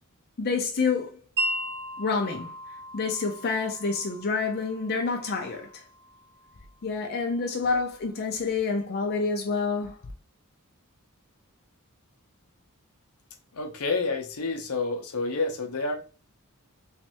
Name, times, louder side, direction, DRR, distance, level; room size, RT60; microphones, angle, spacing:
voice 1, 0.4-1.2 2.0-2.5 2.9-5.7 6.8-9.9, left 4 dB, 45° left, 0.6 m, -28 dB
Wind chime, 1.4-7.4, right 1 dB, 50° right, 0.8 m, -37 dB
voice 2, 13.5-16.0, left 3 dB, 80° left, 0.8 m, -29 dB
3.2 x 3.2 x 2.9 m
head